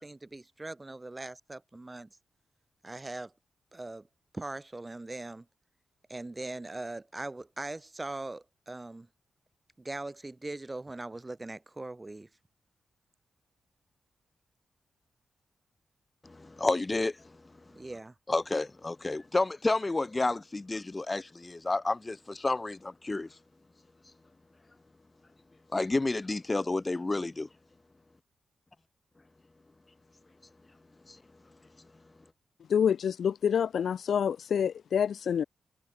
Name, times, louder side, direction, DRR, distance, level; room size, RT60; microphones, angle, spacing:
voice 1, 0.0-2.1 2.8-3.3 3.7-4.1 4.3-5.5 6.1-9.1 9.8-12.3 17.7-18.1, right 2 dB, 25° right, 3.7 m, -40 dB
voice 2, 16.2-17.2 18.3-23.3 25.7-27.5 31.1-31.2, left 2 dB, 30° left, 2.1 m, -30 dB
voice 3, 32.7-35.4, left 8 dB, 75° left, 0.7 m, -27 dB
cardioid pair, 55°, 0 cm